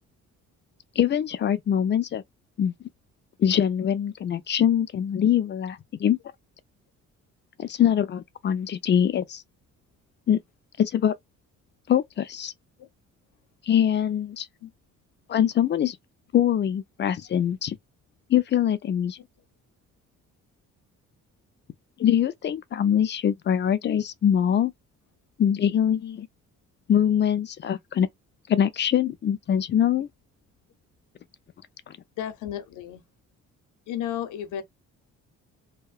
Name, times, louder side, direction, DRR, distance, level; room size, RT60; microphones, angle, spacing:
voice 1, 1.0-2.2 2.6-2.7 3.4-6.2 7.6-9.4 10.3-10.4 10.8-11.1 11.9-12.5 13.7-14.5 15.3-16.0 16.3-17.8 18.3-19.2 22.0-24.7 25.4-26.3 26.9-28.1 28.5-30.1 31.9-32.0, left 9 dB, 35° left, 0.4 m, -23 dB
voice 2, 32.2-33.0 33.9-34.6, left 10 dB, 80° left, 0.7 m, -33 dB
2.7 x 2.1 x 2.3 m
cardioid pair, 90°, 30 cm